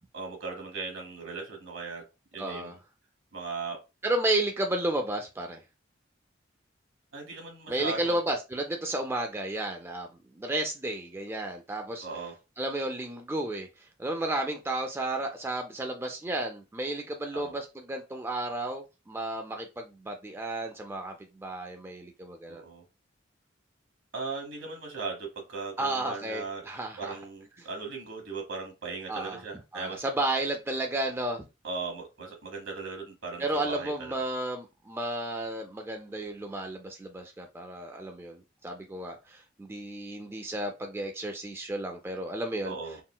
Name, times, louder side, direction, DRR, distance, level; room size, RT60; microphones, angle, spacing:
voice 1, 0.1-2.0 2.3-2.7 3.3-3.8 7.1-8.2 12.0-12.3 17.3-17.5 22.5-22.8 24.1-26.7 27.0-30.0 31.6-34.2 42.6-43.0, right 4 dB, 80° right, 1.1 m, -38 dB
voice 2, 2.4-2.8 4.0-5.6 7.7-10.1 10.3-12.1 12.6-22.6 25.8-27.2 27.6-27.7 29.1-29.4 29.7-31.4 33.4-42.8, right 1 dB, 15° right, 0.3 m, -32 dB
3.7 x 2.0 x 2.2 m
head